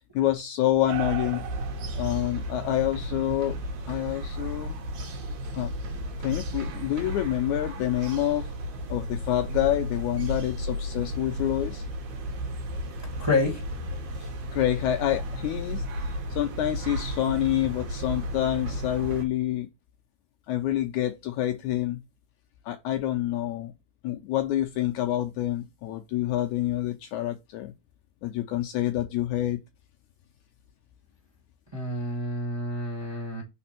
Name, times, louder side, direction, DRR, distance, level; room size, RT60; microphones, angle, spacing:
voice 1, 0.1-1.4 2.0-3.6 3.9-4.8 5.6-5.7 6.2-8.5 8.9-11.8 14.2-19.7 20.5-22.0 22.6-23.7 24.0-27.7 28.2-29.6, left 13 dB, 80° left, 1.9 m, -27 dB
sound 1, 0.9-19.3, equal, 70° right, 2.7 m, -34 dB
voice 2, 13.2-13.6 31.7-33.4, left 2 dB, 10° right, 1.6 m, -28 dB
5.0 x 4.3 x 5.8 m
omnidirectional pair, 3.8 m